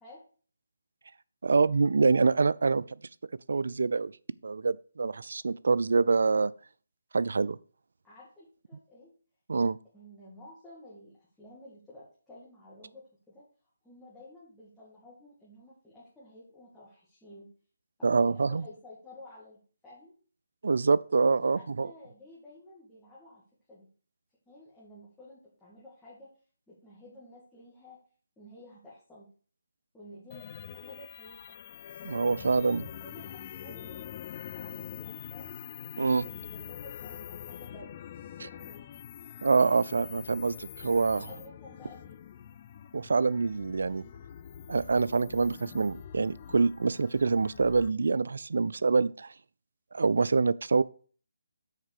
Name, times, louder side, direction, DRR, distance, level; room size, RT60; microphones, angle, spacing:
voice 1, 1.4-3.0 3.5-4.1 4.4-6.5 7.1-7.6 9.5-9.8 18.0-18.6 20.6-21.9 32.0-32.8 36.0-36.2 38.4-38.5 39.4-41.3 42.9-44.0 44.7-49.3 49.9-50.8, right 4 dB, 65° right, 0.4 m, -26 dB
voice 2, 8.0-9.1 9.9-13.4 13.8-17.5 18.0-20.1 21.3-23.4 23.7-23.9 24.5-26.3 26.7-28.0 28.4-29.3 29.9-30.5 30.7-31.6 32.1-34.0 34.5-35.5 36.2-38.0 38.5-38.9 40.9-42.2, left 1 dB, 5° left, 2.1 m, -52 dB
sound 1, 30.3-47.9, left 10 dB, 30° left, 0.4 m, -45 dB
6.5 x 4.5 x 6.5 m
figure-of-eight pair, 155°, 0 cm